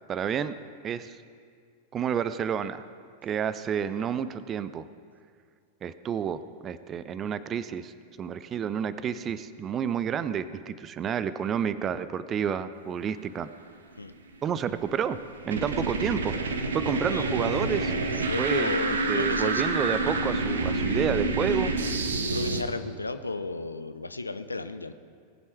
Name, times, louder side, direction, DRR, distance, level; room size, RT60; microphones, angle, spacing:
voice 1, 0.1-0.5 0.8-1.2 1.9-2.8 3.2-4.8 5.8-7.9 8.2-13.5 14.4-15.2 15.4-16.4 16.7-17.9 18.4-18.8 19.1-21.7, right 8 dB, 25° right, 14 dB, 0.5 m, -30 dB
sound 1, 14.5-22.6, right 3 dB, 65° right, 1.0 m, -28 dB
voice 2, 17.0-17.3 18.1-19.6 22.1-24.9, left 3 dB, 80° left, 11 dB, 0.6 m, -33 dB
19.5 x 7.6 x 4.5 m, 2.1 s
figure-of-eight pair, 90°, 0 cm